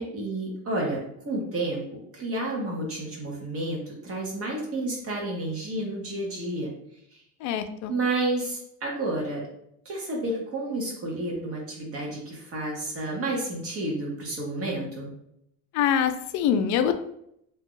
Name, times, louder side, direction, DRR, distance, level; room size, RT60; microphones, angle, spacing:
voice 1, 0.1-1.8 2.1-6.7 7.1-7.2 7.9-9.5 9.8-15.1, right 2 dB, 40° right, -2 dB, 1.1 m, -30 dB
voice 2, 7.4-7.9 15.7-16.9, left 8 dB, 55° left, 9 dB, 0.4 m, -24 dB
2.8 x 2.3 x 3.7 m, 0.74 s
cardioid pair, 120°, 36 cm